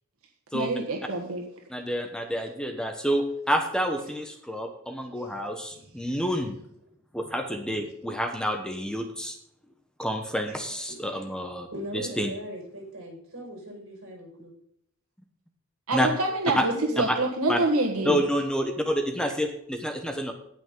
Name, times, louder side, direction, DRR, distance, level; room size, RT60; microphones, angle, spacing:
voice 1, 0.5-1.4 15.9-16.7 17.0-18.2, right 2 dB, 90° right, 1 dB, 1.6 m, -26 dB
voice 2, 1.7-6.6 7.1-9.3 10.0-11.7 11.9-12.3 15.9-16.1 16.5-16.6 17.0-17.2 17.5-17.6 18.0-20.3, equal, 5° left, 5 dB, 1.0 m, -28 dB
voice 3, 5.7-6.1 10.5-10.6 10.9-11.2 11.7-14.5 16.6-17.1 17.5-18.0, equal, 65° right, 0 dB, 5.4 m, -40 dB
18.0 x 6.1 x 3.8 m, 0.70 s
head